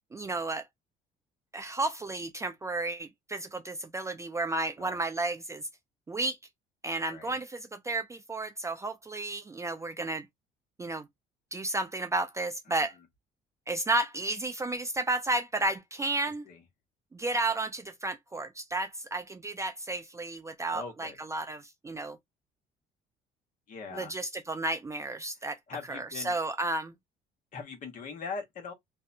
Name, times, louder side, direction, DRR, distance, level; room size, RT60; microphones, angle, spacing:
voice 1, 0.1-0.7 1.5-5.6 6.1-6.4 6.8-10.3 10.8-11.1 11.5-12.9 13.7-16.5 17.1-22.2 23.9-25.6 25.9-26.9, right 2 dB, 15° right, 0.4 m, -32 dB
voice 2, 7.1-7.4 12.7-12.9 16.4-16.6 20.7-21.2 23.7-24.1 25.7-26.4 27.5-28.7, left 5 dB, 50° left, 1.1 m, -41 dB
2.6 x 2.1 x 2.6 m
cardioid pair, 110°, 17 cm